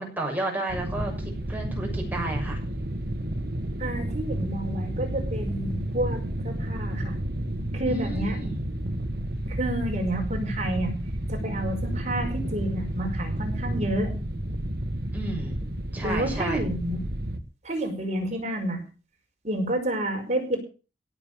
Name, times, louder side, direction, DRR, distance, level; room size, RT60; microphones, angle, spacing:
voice 1, 0.0-2.6 4.4-4.5 7.9-8.6 15.1-16.6, right 2 dB, 10° right, -1 dB, 6.8 m, -32 dB
sound 1, 0.7-17.4, right 1 dB, 60° right, 1.5 m, -31 dB
voice 2, 3.8-7.2 7.7-8.4 9.5-10.9 11.3-14.1 16.0-17.0 17.6-18.8 19.4-20.6, right 1 dB, 40° right, 3 dB, 5.4 m, -30 dB
17.5 x 7.5 x 7.3 m, 0.35 s
head